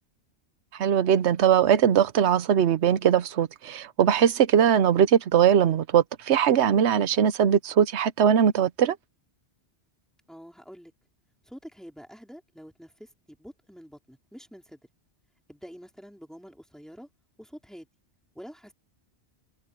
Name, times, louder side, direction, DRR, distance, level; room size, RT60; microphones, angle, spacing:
voice 1, 0.7-9.0, right 9 dB, 90° right, 1.0 m, -21 dB
voice 2, 10.3-10.9 11.5-14.8 15.5-17.1 17.4-17.9 18.3-18.7, equal, ahead, 4.6 m, -46 dB
omnidirectional pair, 1.1 m